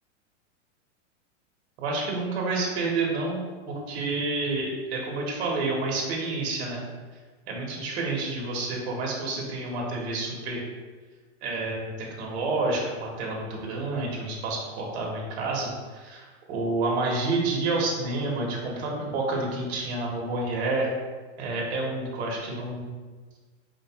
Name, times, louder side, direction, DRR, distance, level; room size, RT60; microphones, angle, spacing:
voice 1, 1.8-3.4 3.7-6.8 7.5-10.6 11.4-20.9 21.4-22.9, right 3 dB, 60° right, -2 dB, 1.3 m, -29 dB
4.8 x 2.2 x 4.4 m, 1.4 s
supercardioid pair, 150°, 37 cm